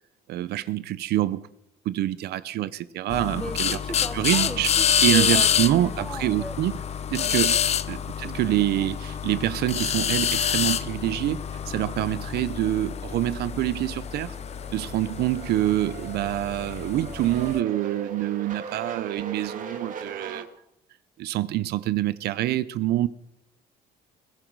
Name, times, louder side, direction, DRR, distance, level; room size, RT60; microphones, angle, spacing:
voice 1, 0.3-1.4 1.9-3.8 4.1-4.7 5.0-6.8 7.1-7.5 7.9-14.4 14.7-20.5 21.2-23.1, right 14 dB, 75° right, 0.6 m, -26 dB
sound 1, 3.1-17.6, left 8 dB, 40° left, 0.6 m, -27 dB
voice 2, 3.4-6.6 7.2-7.4, equal, 5° left, 1.9 m, -37 dB
sound 2, 8.5-20.4, right 5 dB, 50° right, 2.4 m, -42 dB
22.0 x 13.0 x 4.7 m
cardioid pair, 110°, 17 cm